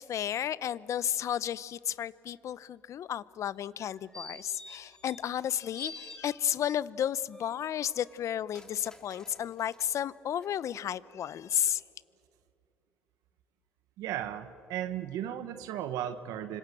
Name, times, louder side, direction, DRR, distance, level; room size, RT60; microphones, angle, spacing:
voice 1, 0.0-11.8, left 10 dB, 55° left, 19 dB, 0.7 m, -33 dB
sound 1, 3.6-5.5 5.7-6.8 7.3-9.9 10.4-10.5, left 2 dB, 10° left, 2.3 m, -50 dB
voice 2, 14.0-16.6, right 11 dB, 80° right, 9 dB, 1.2 m, -35 dB
27.5 x 25.5 x 7.9 m, 2.6 s
supercardioid pair, 85°, 6 cm